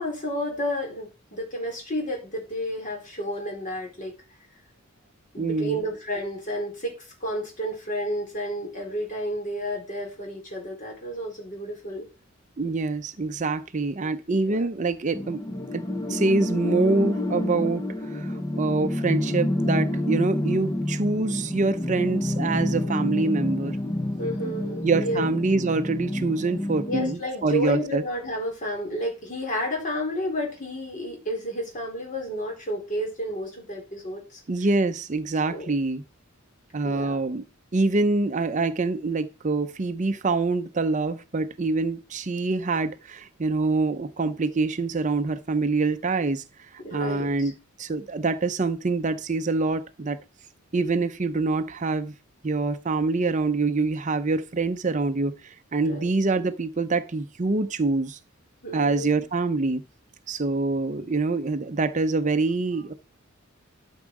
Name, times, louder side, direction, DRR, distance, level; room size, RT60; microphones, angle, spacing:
voice 1, 0.0-4.1 5.3-12.1 14.5-14.6 24.2-25.2 26.8-34.4 35.5-35.7 36.8-37.2 46.8-47.5 55.8-56.0 58.6-59.2, equal, 40° left, 4.2 m, -31 dB
voice 2, 5.4-5.8 12.6-15.4 15.7-15.8 16.1-23.8 24.8-28.0 34.5-36.0 36.7-37.4 37.7-47.5 47.8-50.2 50.7-52.1 52.4-58.2 58.7-59.8 60.3-62.9, right 3 dB, 35° right, 0.6 m, -25 dB
sound 1, 15.1-27.1, left 1 dB, 20° left, 0.7 m, -28 dB
12.0 x 6.3 x 4.7 m
head